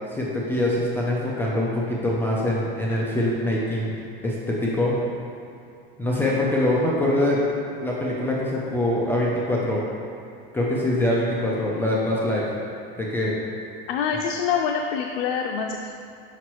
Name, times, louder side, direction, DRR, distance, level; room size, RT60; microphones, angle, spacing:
voice 1, 0.1-3.9 4.2-5.0 6.0-7.4 7.8-9.8 10.5-12.5 13.0-13.4, left 1 dB, 10° left, -5 dB, 0.4 m, -24 dB
voice 2, 13.9-15.9, left 6 dB, 90° left, 2 dB, 0.5 m, -25 dB
5.8 x 5.4 x 3.0 m, 2.6 s
supercardioid pair, 150°, 29 cm